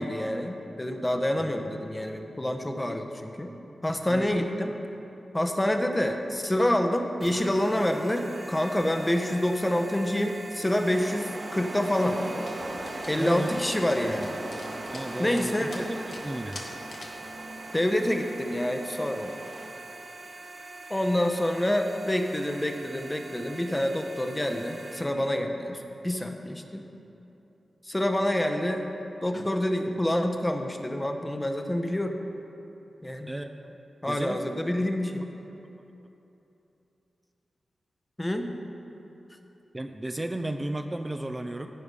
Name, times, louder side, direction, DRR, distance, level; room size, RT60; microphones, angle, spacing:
voice 1, 0.0-3.5 3.8-4.8 5.3-12.2 13.1-14.3 15.2-15.8 17.7-19.3 20.9-25.8 26.0-26.8 27.8-28.8 29.2-32.2 33.0-33.3 34.0-35.3 38.2-38.5, left 1 dB, 20° left, 5 dB, 0.9 m, -27 dB
sound 1, 7.2-25.0, right 2 dB, 40° right, 1.7 m, -44 dB
sound 2, 10.7-19.7, right 1 dB, 60° right, 1.4 m, -39 dB
Dog, 12.5-17.3, left 2 dB, 65° left, 1.3 m, -47 dB
voice 2, 13.2-13.6 14.9-16.6 33.3-33.7 34.1-34.4 35.7-35.8 39.7-41.7, right 1 dB, 25° right, 6 dB, 0.5 m, -34 dB
14.0 x 5.0 x 5.4 m, 3.0 s
cardioid pair, 50°, 0 cm